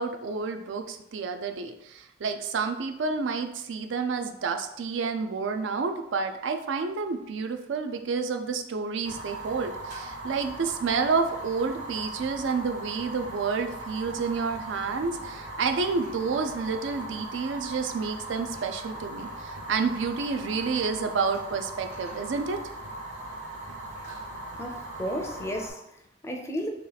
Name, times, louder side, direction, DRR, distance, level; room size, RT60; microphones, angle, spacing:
voice 1, 0.0-22.6, right 4 dB, 80° right, 0.4 m, -29 dB
Fire, 9.0-25.7, right 2 dB, 65° right, 0.9 m, -39 dB
voice 2, 24.6-26.7, equal, 15° left, 0.4 m, -34 dB
3.1 x 2.9 x 3.9 m
head